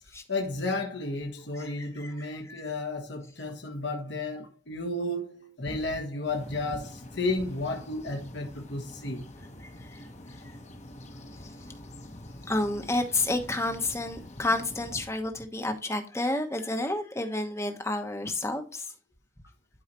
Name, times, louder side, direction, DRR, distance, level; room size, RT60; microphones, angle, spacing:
voice 1, 0.3-9.3, left 2 dB, 65° left, 1.5 m, -33 dB
voice 2, 1.5-2.7 5.6-5.8 9.6-10.0 12.5-18.9, left 2 dB, 15° left, 1.0 m, -31 dB
sound 1, 6.2-15.0, left 1 dB, 35° left, 1.2 m, -46 dB
11.5 x 4.8 x 3.0 m
head